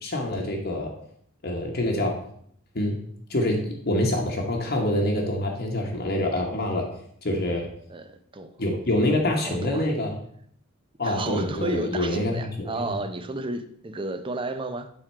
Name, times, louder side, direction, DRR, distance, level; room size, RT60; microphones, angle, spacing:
voice 1, 0.0-0.9 1.4-2.2 2.7-3.0 3.3-6.9 7.2-7.7 8.6-10.1 11.0-12.8, left 1 dB, 50° left, 1.1 m, -26 dB
voice 2, 7.9-8.6 9.4-9.9 11.0-14.9, right 2 dB, 25° right, 0.5 m, -32 dB
7.5 x 3.7 x 5.6 m
head